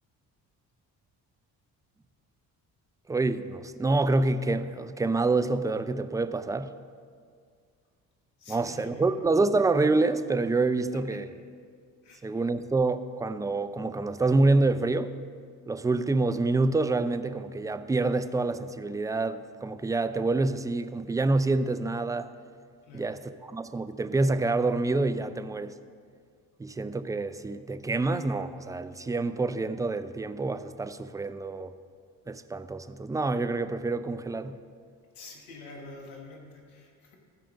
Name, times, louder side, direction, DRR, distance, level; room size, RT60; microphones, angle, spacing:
voice 1, 3.1-6.7 8.5-11.3 12.2-15.1 15.7-22.3 22.9-25.8 26.6-31.7 32.3-34.6, right 3 dB, 10° right, 11 dB, 0.3 m, -27 dB
voice 2, 8.4-9.1 11.1-11.2 12.0-12.4 22.8-23.1 35.1-37.2, left 3 dB, 90° left, 1 dB, 1.4 m, -47 dB
13.5 x 5.1 x 6.1 m, 2.1 s
hypercardioid pair, 50°, 43 cm